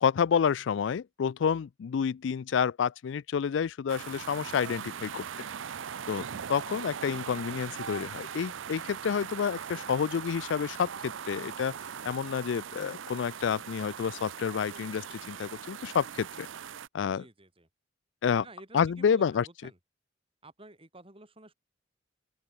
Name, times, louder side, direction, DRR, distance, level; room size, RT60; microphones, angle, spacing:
voice 1, 0.0-5.3 6.1-11.7 12.0-16.5 16.9-17.3 18.2-18.5 18.7-19.5, left 7 dB, 70° left, 0.4 m, -29 dB
sound 1, 3.9-16.9, right 7 dB, 85° right, 0.6 m, -40 dB
voice 2, 17.1-17.7 18.4-19.8 20.4-21.5, right 2 dB, 30° right, 6.6 m, -51 dB
open air
head